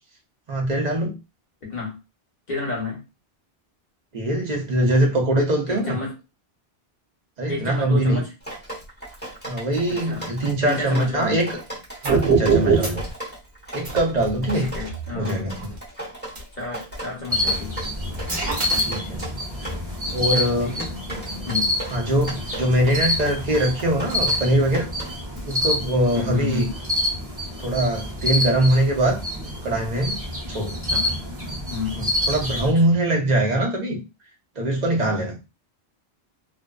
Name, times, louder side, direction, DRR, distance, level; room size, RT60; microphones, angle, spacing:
voice 1, 0.5-1.1 4.1-6.0 7.4-8.2 9.4-11.6 12.0-13.0 13.7-14.7 15.2-15.5 18.8-19.2 20.1-20.7 21.9-24.9 25.4-26.7 27.6-29.2 29.6-30.2 30.5-30.8 32.0-34.0 34.6-35.4, right 1 dB, 45° right, 0 dB, 0.8 m, -22 dB
voice 2, 1.6-2.0 2.5-3.0 5.7-6.1 7.5-8.3 9.9-10.3 10.6-11.4 12.6-13.0 14.6-15.5 16.6-17.8 18.3-18.4 20.6-20.9 21.4-21.7 26.1-26.7 30.8-31.2 31.7-32.0, left 3 dB, 50° left, -2 dB, 0.9 m, -31 dB
Drip, 8.4-25.4, right 1 dB, 10° left, 0.9 m, -37 dB
sound 1, 12.0-13.1 13.8-15.8 16.4-16.5 16.9-17.1 17.5-19.3, right 5 dB, 75° right, 1.2 m, -23 dB
sound 2, 17.3-32.7, left 1 dB, 15° right, 0.8 m, -28 dB
2.6 x 2.1 x 2.2 m, 0.26 s
omnidirectional pair, 1.1 m